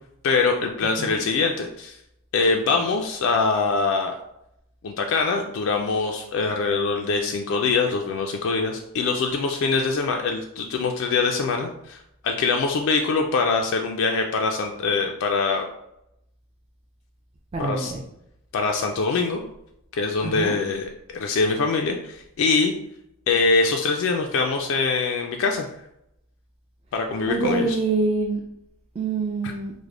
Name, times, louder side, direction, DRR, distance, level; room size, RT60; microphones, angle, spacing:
voice 1, 0.2-2.0 2.3-4.2 4.8-15.6 17.6-17.9 18.5-19.4 19.9-22.7 23.3-25.7 26.9-27.7, left 4 dB, 65° left, 2 dB, 0.3 m, -23 dB
voice 2, 17.5-18.0 20.2-20.6 27.3-28.4 28.9-29.7, right 3 dB, 25° right, -1 dB, 0.3 m, -25 dB
3.2 x 2.1 x 3.6 m, 0.81 s
head